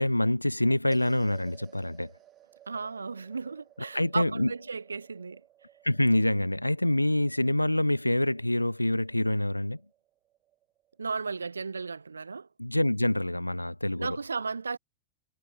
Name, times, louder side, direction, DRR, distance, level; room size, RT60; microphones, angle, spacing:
voice 1, 0.0-2.1 3.9-4.5 5.8-9.8 12.6-14.2, left 1 dB, 85° left, 0.8 m, -26 dB
sound 1, 0.9-11.3, right 12 dB, 30° right, 2.9 m, -58 dB
voice 2, 2.7-5.4 11.0-12.5 14.0-14.8, right 4 dB, 75° right, 1.9 m, -35 dB
figure-of-eight pair, 90°, 0 cm